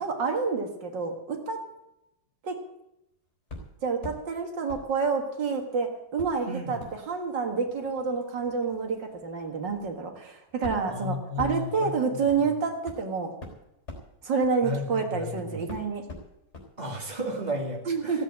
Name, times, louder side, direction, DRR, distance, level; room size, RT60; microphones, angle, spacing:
voice 1, 0.0-1.6 2.4-2.6 3.8-6.8 7.1-13.3 14.2-16.0 17.9-18.2, right 5 dB, 80° right, 4 dB, 2.4 m, -28 dB
sound 1, 3.5-4.2 4.7-5.7 6.2-15.3 15.7-16.7 17.0-17.1, left 2 dB, 40° left, 4.1 m, -44 dB
voice 2, 6.5-6.8 10.9-12.5 14.6-15.6 16.8-18.2, left 1 dB, 25° right, 1 dB, 2.7 m, -34 dB
16.0 x 8.1 x 8.7 m, 0.87 s
omnidirectional pair, 1.9 m